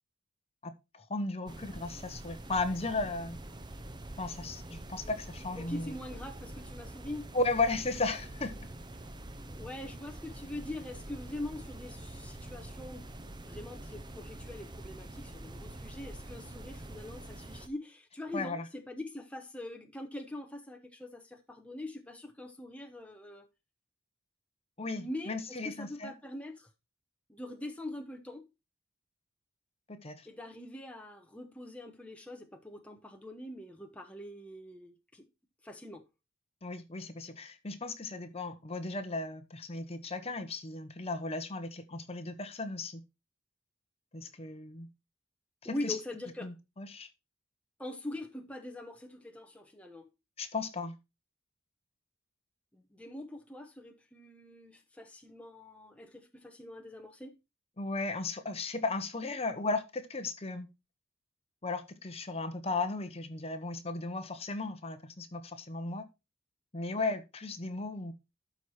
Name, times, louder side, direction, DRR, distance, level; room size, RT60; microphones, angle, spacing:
voice 1, 0.6-3.4 4.2-6.0 7.3-8.6 18.3-18.6 24.8-26.1 30.0-30.3 36.6-43.0 44.1-44.9 45.6-46.0 46.4-47.1 50.4-50.9 57.8-60.7 61.6-66.1 66.7-68.1, left 3 dB, 30° left, 1.0 m, -35 dB
sound 1, 1.5-17.7, right 1 dB, 20° right, 0.8 m, -45 dB
voice 2, 5.6-7.3 9.5-13.1 13.4-23.5 25.0-26.7 27.3-28.4 30.2-35.2 35.6-36.0 45.6-46.5 47.8-50.1 52.7-57.3, left 1 dB, 5° left, 0.9 m, -43 dB
12.5 x 4.8 x 4.3 m
head